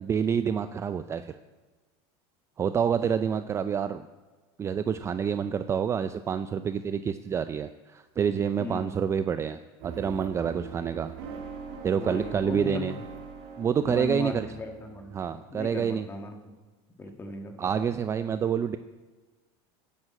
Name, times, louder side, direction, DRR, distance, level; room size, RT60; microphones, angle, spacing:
voice 1, 0.0-1.4 2.6-4.0 4.6-11.1 11.8-13.0 13.6-14.5 15.1-16.1 17.6-18.8, right 7 dB, 20° right, 11 dB, 0.4 m, -28 dB
voice 2, 8.6-8.9 11.9-12.9 13.8-16.5 17.0-17.5, left 3 dB, 15° left, 4 dB, 1.6 m, -37 dB
sound 1, 9.8-15.9, right 6 dB, 70° right, 3.1 m, -42 dB
9.9 x 9.8 x 7.6 m, 1.3 s
supercardioid pair, 135°, 14 cm